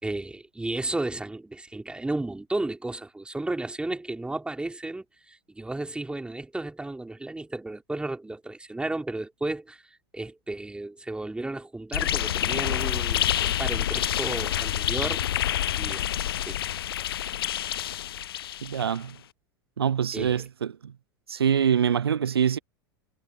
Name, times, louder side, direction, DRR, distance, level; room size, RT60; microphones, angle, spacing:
voice 1, 0.0-15.2 15.8-16.1 16.4-16.6 20.1-20.4, right 2 dB, 10° right, 3.7 m, -33 dB
sound 1, 11.9-19.0, left 12 dB, 75° left, 0.7 m, -28 dB
voice 2, 18.6-19.1 19.8-20.9 21.3-22.6, right 8 dB, 85° right, 0.7 m, -25 dB
hypercardioid pair, 90°, 13 cm